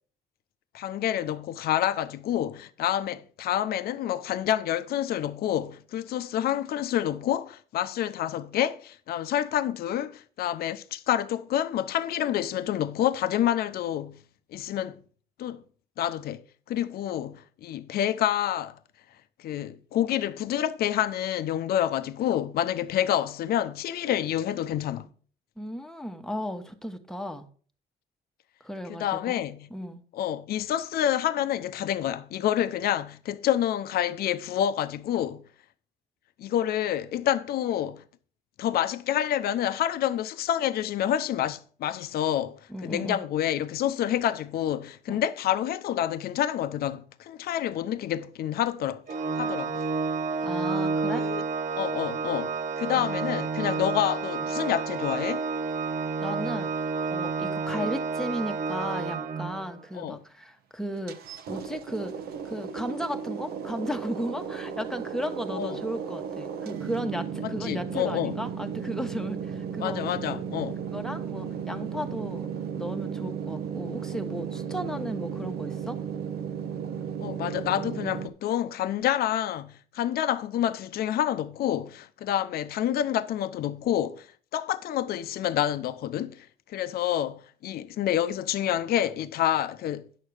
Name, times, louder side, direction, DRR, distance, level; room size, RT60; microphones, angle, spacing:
voice 1, 0.7-14.2 14.5-15.0 15.4-15.6 16.0-16.4 16.7-18.8 19.4-25.1 28.9-29.7 30.1-35.5 36.4-38.0 38.6-49.0 49.4-49.8 51.1-51.4 51.8-55.4 57.7-57.8 59.9-60.2 65.5-65.8 67.4-68.4 69.8-70.8 77.2-84.3 84.5-90.1, left 11 dB, 65° left, 0.8 m, -28 dB
voice 2, 25.6-27.5 28.6-29.4 29.7-30.0 42.7-43.2 45.1-45.2 50.4-51.2 56.2-56.7 57.1-61.2 61.5-62.1 62.4-70.4 70.9-72.5 72.8-76.0, equal, 5° left, 1.2 m, -35 dB
Organ, 49.1-59.8, right 4 dB, 50° right, 1.0 m, -30 dB
sound 1, 61.1-78.3, right 7 dB, 70° right, 1.1 m, -35 dB
10.0 x 6.6 x 4.7 m
cardioid pair, 110°, 17 cm